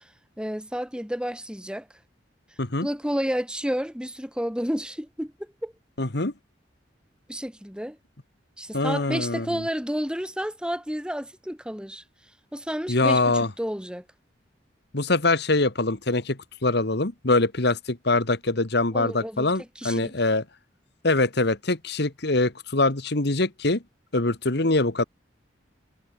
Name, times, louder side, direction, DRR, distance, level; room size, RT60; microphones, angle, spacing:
voice 1, 0.4-1.9 2.8-5.7 7.3-8.0 8.6-12.0 12.5-13.2 13.6-14.0 18.9-19.5 19.8-20.2, equal, 5° right, 5.5 m, -30 dB
voice 2, 6.0-6.3 8.7-9.7 12.9-13.5 14.9-20.4 21.0-23.8 24.1-25.0, left 2 dB, 65° left, 1.9 m, -23 dB
head